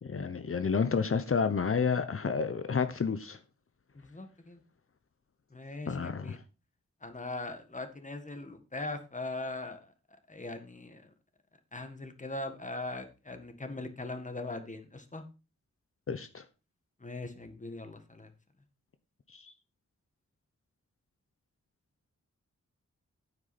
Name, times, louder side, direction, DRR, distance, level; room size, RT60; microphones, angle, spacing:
voice 1, 0.0-3.4 5.9-6.4 16.1-16.4 19.3-19.5, left 5 dB, 50° left, 0.9 m, -30 dB
voice 2, 3.9-4.6 5.5-6.4 7.0-9.9 10.3-11.1 11.7-15.2 17.0-18.3, left 2 dB, 25° left, 1.7 m, -40 dB
9.1 x 8.1 x 4.3 m
wide cardioid pair, 110°, 29 cm